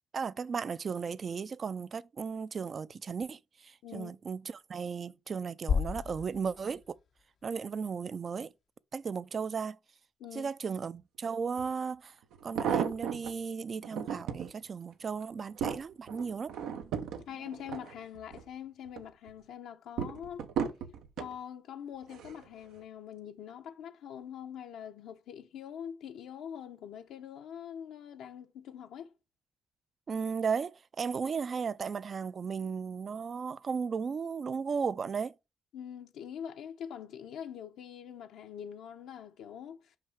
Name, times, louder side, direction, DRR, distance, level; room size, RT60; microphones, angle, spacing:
voice 1, 0.1-7.0 7.4-8.5 8.9-9.8 10.3-12.2 12.4-16.5 30.1-35.3, right 5 dB, 45° right, 0.4 m, -35 dB
sound 1, 5.7-7.8, left 6 dB, 55° left, 0.6 m, -34 dB
voice 2, 10.2-10.5 17.3-20.5 21.2-29.1 35.7-40.0, left 9 dB, 85° left, 0.9 m, -44 dB
sound 2, 11.6-11.7 12.3-13.3 13.8-14.5 15.0-18.5 18.9-19.3 20.0-21.3 22.1-22.5 22.8-22.9, right 7 dB, 90° right, 0.9 m, -35 dB
5.6 x 5.6 x 4.9 m
cardioid pair, 90°, 0 cm